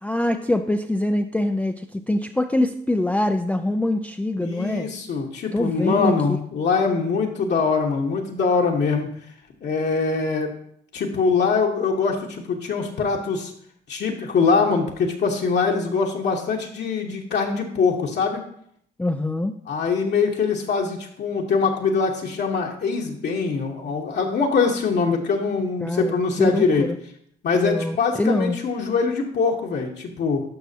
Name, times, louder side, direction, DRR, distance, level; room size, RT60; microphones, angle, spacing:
voice 1, 0.0-4.9 5.5-6.4 19.0-19.5 25.8-27.0 27.5-28.6, left 1 dB, 5° left, 6 dB, 0.4 m, -24 dB
voice 2, 4.4-9.1 9.6-10.5 10.9-13.5 13.9-18.4 19.7-26.9 27.4-30.4, left 5 dB, 60° left, 0 dB, 1.2 m, -23 dB
11.5 x 5.7 x 2.8 m, 0.67 s
cardioid pair, 90°, 20 cm